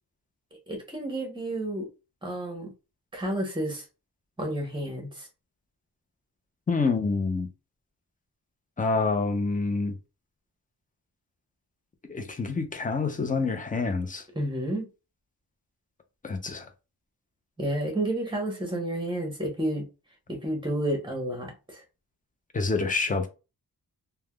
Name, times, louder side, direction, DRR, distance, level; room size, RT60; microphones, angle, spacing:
voice 1, 0.7-1.9 2.2-2.7 3.1-3.8 4.4-5.3 14.3-14.9 17.6-19.9 20.3-21.8, right 1 dB, 10° right, 0.9 m, -30 dB
voice 2, 6.7-7.5 8.8-9.9 12.1-14.2 16.2-16.6 22.5-23.3, left 4 dB, 20° left, 0.5 m, -27 dB
3.3 x 2.1 x 2.2 m
wide cardioid pair, 150°, 39 cm